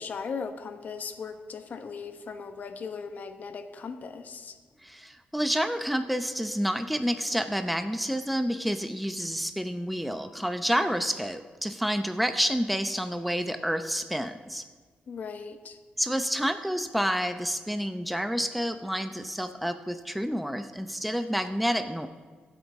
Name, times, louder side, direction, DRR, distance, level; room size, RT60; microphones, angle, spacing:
voice 1, 0.0-4.6 10.8-11.0 15.1-15.8, left 5 dB, 60° left, 8 dB, 1.1 m, -38 dB
voice 2, 4.8-14.7 16.0-22.1, equal, ahead, 8 dB, 0.6 m, -29 dB
24.0 x 8.2 x 3.5 m, 1.5 s
cardioid pair, 100°, 3 cm